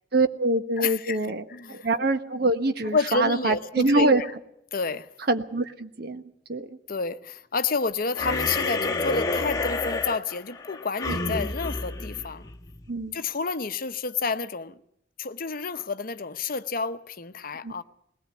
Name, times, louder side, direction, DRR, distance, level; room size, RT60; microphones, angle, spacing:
voice 1, 0.1-4.2 5.3-6.2 6.5-6.8 11.1-11.3 12.9-13.2 17.6-17.8, right 2 dB, 55° right, 1.4 m, -25 dB
voice 2, 0.8-1.9 2.9-4.3 4.7-5.1 6.9-12.4 13.1-14.8 15.2-17.8, left 4 dB, 50° left, 0.9 m, -30 dB
sound 1, 8.2-12.9, left 3 dB, 20° left, 1.4 m, -29 dB
21.0 x 18.0 x 8.3 m
head